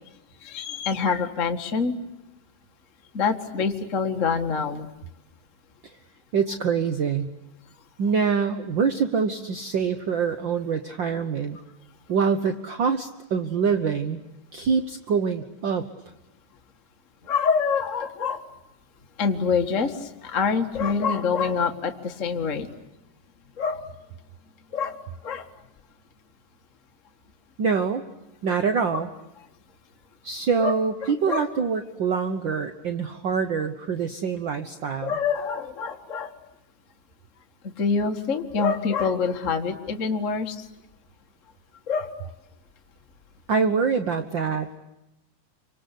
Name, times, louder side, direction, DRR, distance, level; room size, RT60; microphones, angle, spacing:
voice 1, 0.4-2.0 3.1-4.9 17.2-18.4 19.2-22.7 23.6-23.8 24.7-25.0 25.2-25.5 28.9-29.0 30.6-31.5 35.0-36.3 37.6-40.7 41.9-42.1, left 5 dB, 30° left, 4 dB, 1.5 m, -26 dB
voice 2, 6.3-7.3 8.0-11.6 12.1-14.2 14.5-15.8 27.6-28.0 28.4-29.1 30.2-35.2 43.5-44.7, right 5 dB, 65° right, 8 dB, 1.1 m, -25 dB
28.5 x 25.5 x 8.4 m, 0.94 s
omnidirectional pair, 3.8 m